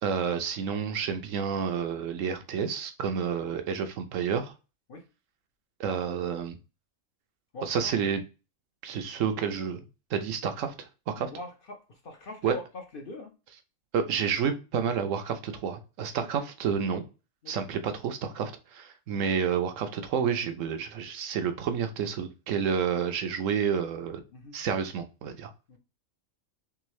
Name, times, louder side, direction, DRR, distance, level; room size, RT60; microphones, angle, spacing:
voice 1, 0.0-4.5 5.8-6.6 7.6-8.2 8.8-9.8 10.1-11.3 12.4-12.5 13.9-17.0 17.5-24.2 24.5-25.5, right 7 dB, 75° right, 7 dB, 0.9 m, -30 dB
voice 2, 7.5-7.9 11.2-13.3 16.2-16.5 17.4-17.5 19.1-19.3 24.3-24.6 25.7-25.8, left 2 dB, 50° left, 3 dB, 0.7 m, -42 dB
3.6 x 3.2 x 3.1 m, 0.31 s
omnidirectional pair, 1.4 m